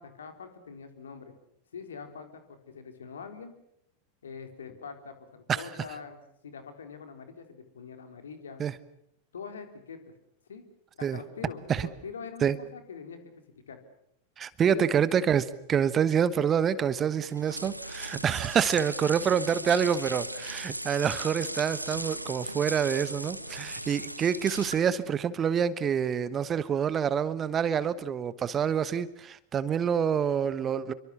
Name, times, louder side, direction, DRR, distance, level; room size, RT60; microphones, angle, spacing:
voice 1, 0.0-1.3 1.7-3.5 4.2-8.6 9.3-10.0 10.5-10.7 11.0-13.8 14.6-14.9, left 6 dB, 65° left, 7 dB, 3.8 m, -44 dB
voice 2, 14.4-30.9, right 8 dB, 25° right, 17 dB, 1.2 m, -27 dB
sound 1, 17.2-25.0, right 1 dB, 90° right, 1.1 m, -38 dB
28.0 x 24.0 x 7.1 m, 0.73 s
figure-of-eight pair, 90°, 0 cm